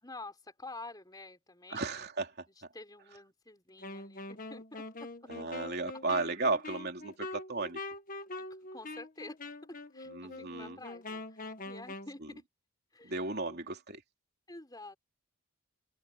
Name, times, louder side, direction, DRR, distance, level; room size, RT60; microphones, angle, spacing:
voice 1, 0.0-1.9 2.7-5.3 5.9-6.0 8.4-8.5 8.7-12.4 12.9-13.2 13.5-13.6 14.5-15.0, left 2 dB, 15° left, 4.6 m, -49 dB
voice 2, 1.7-2.3 5.3-7.8 10.1-10.8 13.0-14.0, right 3 dB, 45° right, 3.2 m, -34 dB
Wind instrument woodwind instrument, 3.8-12.1, left 2 dB, 40° left, 1.6 m, -44 dB
head